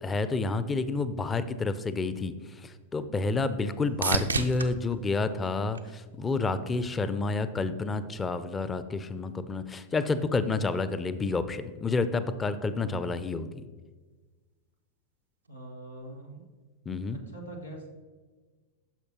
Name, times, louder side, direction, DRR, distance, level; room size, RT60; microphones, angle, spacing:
voice 1, 0.0-2.3 2.6-13.6 16.9-17.2, left 3 dB, 15° left, 13 dB, 0.4 m, -29 dB
sound 1, 2.3-6.5 7.0-7.6 15.4-15.5, right 4 dB, 75° right, 0.4 m, -35 dB
voice 2, 3.3-4.1 15.5-16.5 17.1-17.9, right 1 dB, 90° left, -1 dB, 1.3 m, -44 dB
10.0 x 6.5 x 2.9 m, 1.4 s
figure-of-eight pair, 90°, 0 cm